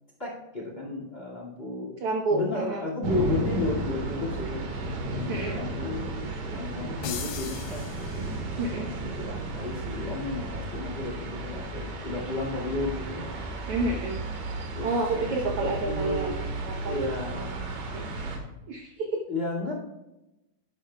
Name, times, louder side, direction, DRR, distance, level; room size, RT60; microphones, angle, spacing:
voice 1, 0.2-4.7 5.0-13.3 14.8-16.4 16.9-17.7 19.3-19.7, left 2 dB, 20° left, -1 dB, 1.7 m, -33 dB
voice 2, 2.0-2.8 5.3-5.6 8.6-8.9 13.7-14.2 14.8-16.3 16.6-17.1 17.3-17.4 17.9-18.0 18.7-19.2, right 2 dB, 70° right, 1 dB, 1.4 m, -29 dB
sound 1, 3.0-18.4, right 2 dB, 85° right, 3.1 m, -34 dB
sound 2, 7.0-8.7, left 9 dB, 85° left, 2.4 m, -39 dB
11.5 x 11.5 x 2.2 m, 0.95 s
omnidirectional pair, 3.7 m